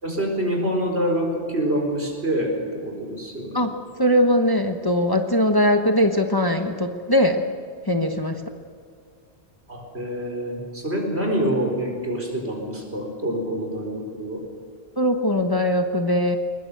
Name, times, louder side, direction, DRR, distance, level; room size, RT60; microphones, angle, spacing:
voice 1, 0.0-3.6 9.7-14.4, right 1 dB, 75° right, 1 dB, 4.8 m, -26 dB
voice 2, 4.0-7.4 7.9-8.4 15.0-16.4, left 1 dB, 20° left, 5 dB, 1.1 m, -20 dB
21.5 x 21.0 x 6.8 m, 2.2 s
omnidirectional pair, 1.1 m